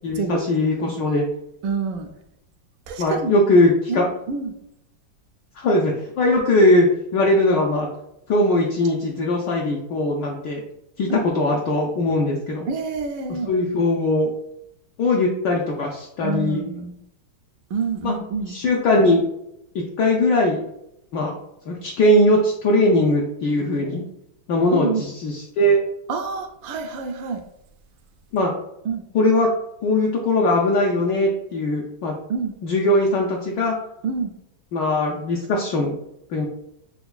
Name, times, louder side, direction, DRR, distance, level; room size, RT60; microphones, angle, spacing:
voice 1, 0.0-1.2 3.0-4.1 5.6-6.9 7.1-7.9 8.3-10.6 11.0-12.7 13.5-14.3 15.0-16.6 18.0-18.1 18.5-19.2 19.7-20.6 21.1-21.3 21.7-24.0 24.5-25.8 28.3-28.5 29.1-29.5 29.8-32.2 32.6-33.8 34.7-36.0 36.3-36.5, left 1 dB, 70° left, -2 dB, 1.1 m, -20 dB
voice 2, 1.6-2.1 2.9-3.3 3.9-4.5 11.1-11.5 12.7-13.5 16.2-17.0 17.7-18.6 24.7-25.0 26.1-27.4 28.8-29.0 32.3-32.6 34.0-34.3, right 5 dB, 80° right, 5 dB, 1.3 m, -27 dB
6.7 x 2.2 x 2.3 m, 0.80 s
omnidirectional pair, 2.1 m